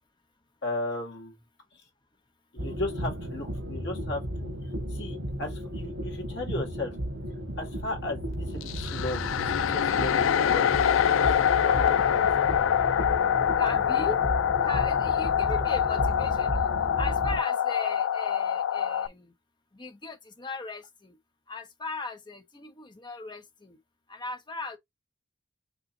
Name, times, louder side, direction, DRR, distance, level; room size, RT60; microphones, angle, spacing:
voice 1, 0.6-1.4 1.7-1.9 2.5-7.0 7.6-12.3 16.0-16.1, left 2 dB, 60° left, 2.0 m, -36 dB
sound 1, 2.6-17.4, equal, 80° right, 1.8 m, -34 dB
sound 2, 8.6-19.1, left 9 dB, 75° left, 0.3 m, -25 dB
voice 2, 11.2-12.2 13.6-14.2 14.6-19.3 19.7-21.2 21.5-23.8 24.1-24.8, left 3 dB, 25° left, 0.8 m, -38 dB
5.2 x 3.6 x 2.8 m
head